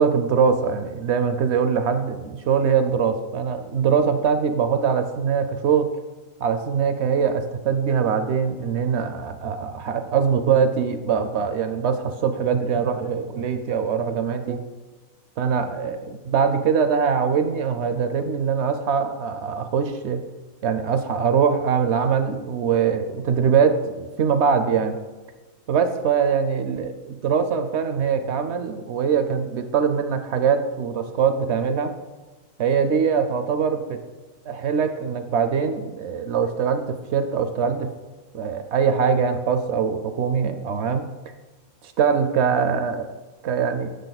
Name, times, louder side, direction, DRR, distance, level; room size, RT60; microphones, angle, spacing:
voice 1, 0.0-5.9 6.4-14.7 15.4-20.2 20.6-25.0 25.7-31.9 32.6-34.0 34.5-37.9 38.3-41.1 42.0-43.1 43.4-43.9, right 6 dB, 65° right, 9 dB, 0.8 m, -22 dB
7.0 x 6.6 x 4.0 m, 1.2 s
omnidirectional pair, 1.4 m